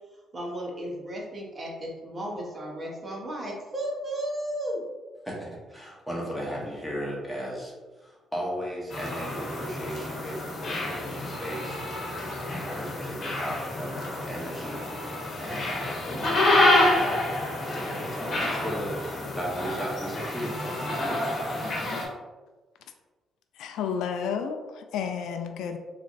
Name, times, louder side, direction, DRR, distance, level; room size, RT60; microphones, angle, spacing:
voice 1, 0.3-4.8, right 1 dB, 35° right, -2 dB, 1.0 m, -34 dB
voice 2, 5.2-7.7 8.0-11.8 12.4-17.3 17.6-21.4, equal, ahead, -4 dB, 1.2 m, -36 dB
sound 1, 8.9-22.0, left 1 dB, 50° left, 1.1 m, -28 dB
voice 3, 23.6-25.8, left 7 dB, 85° left, 6 dB, 0.3 m, -31 dB
3.7 x 3.2 x 2.6 m, 1.3 s
cardioid pair, 90°, 0 cm